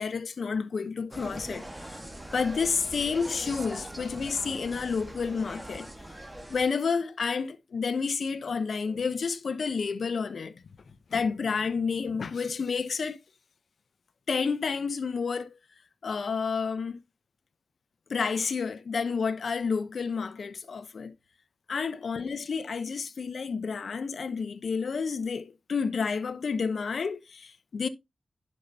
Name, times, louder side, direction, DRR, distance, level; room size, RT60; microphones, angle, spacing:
voice 1, 0.0-2.0 2.3-5.9 6.5-10.5 11.1-13.2 14.3-15.5 16.0-17.0 18.1-21.1 21.7-27.9, left 5 dB, 70° left, 0.8 m, -30 dB
Insect, 1.1-6.7, right 1 dB, 15° right, 1.5 m, -41 dB
10.0 x 5.4 x 2.8 m
cardioid pair, 60°, 0 cm